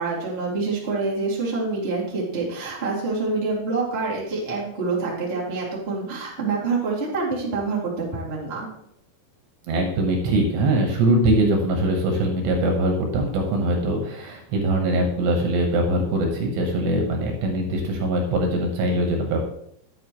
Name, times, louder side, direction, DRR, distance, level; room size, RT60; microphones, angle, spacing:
voice 1, 0.0-8.7, right 3 dB, 35° right, -5 dB, 1.0 m, -26 dB
voice 2, 9.7-19.4, right 1 dB, 70° right, 2 dB, 3.0 m, -22 dB
10.5 x 8.9 x 3.1 m, 0.74 s
omnidirectional pair, 5.9 m